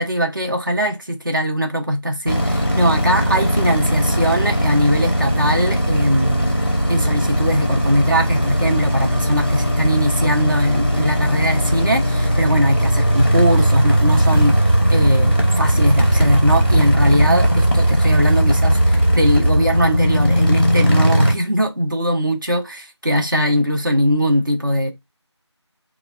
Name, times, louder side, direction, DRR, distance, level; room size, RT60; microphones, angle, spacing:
voice 1, 0.0-6.5 6.9-14.6 14.9-24.9, equal, 45° right, 0.8 m, -20 dB
sound 1, 2.3-21.3, equal, 20° left, 0.6 m, -18 dB
4.1 x 2.3 x 2.3 m
figure-of-eight pair, 175°, 15 cm